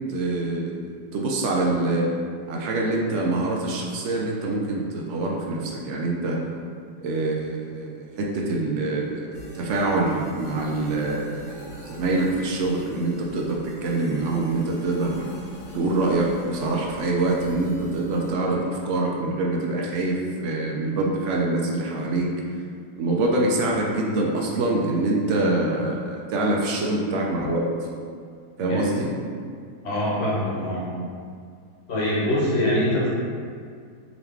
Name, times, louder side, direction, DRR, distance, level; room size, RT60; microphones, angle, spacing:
voice 1, 0.1-2.0 2.5-6.4 7.0-15.3 15.7-22.3 23.0-27.6 28.6-29.1, right 2 dB, 75° right, -1 dB, 0.6 m, -25 dB
sound 1, 9.3-18.3, right 1 dB, 70° left, 1.3 m, -41 dB
voice 2, 29.8-30.9 31.9-33.1, left 1 dB, 45° left, -7 dB, 1.1 m, -24 dB
3.8 x 2.9 x 3.4 m, 2.1 s
omnidirectional pair, 1.8 m